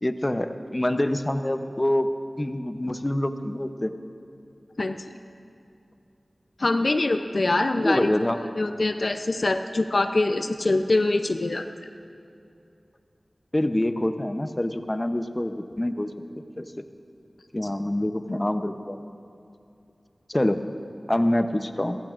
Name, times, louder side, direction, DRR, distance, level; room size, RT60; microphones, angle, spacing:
voice 1, 0.0-2.1 2.4-3.9 7.8-8.4 13.5-16.1 16.6-16.7 17.5-19.0 20.3-20.6 21.1-22.0, left 1 dB, 25° left, 8 dB, 0.7 m, -25 dB
voice 2, 4.8-5.1 6.6-8.1 8.6-11.7 17.6-17.7, left 2 dB, 65° left, 7 dB, 0.5 m, -24 dB
28.5 x 15.0 x 2.5 m, 2.6 s
wide cardioid pair, 50°, 0 cm